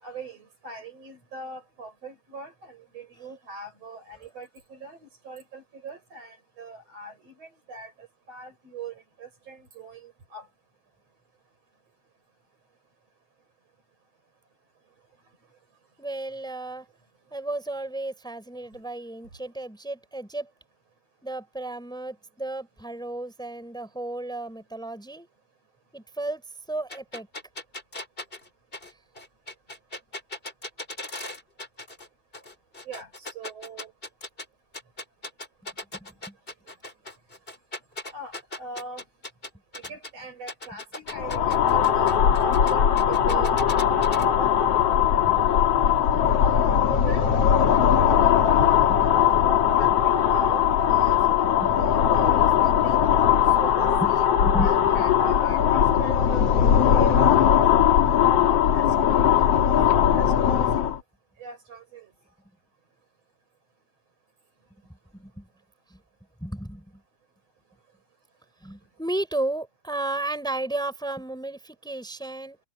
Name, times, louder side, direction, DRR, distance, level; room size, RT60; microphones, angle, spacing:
voice 1, 0.0-10.5 32.9-33.9 38.1-39.0 39.8-43.5 46.9-47.3 49.8-51.4 51.8-53.0 53.6-54.3 54.6-57.3 58.7-59.4 60.1-60.9 61.4-62.1, right 4 dB, 55° right, 6.9 m, -41 dB
voice 2, 16.0-16.9 17.3-20.5 21.2-25.3 25.9-26.4 26.7-27.3 35.9-36.3 44.0-44.2 45.1-45.4 48.8-49.0 49.3-49.4 51.4-51.7 54.0-54.1 54.4-55.0 65.1-65.5 65.9-66.0 66.4-67.0 68.6-72.6, right 2 dB, ahead, 4.8 m, -33 dB
sound 1, 26.9-32.1 32.3-34.4 34.7-40.1 40.5-44.2, left 2 dB, 15° left, 3.5 m, -38 dB
sound 2, 41.1-61.0, left 9 dB, 55° left, 2.6 m, -20 dB
omnidirectional pair, 3.5 m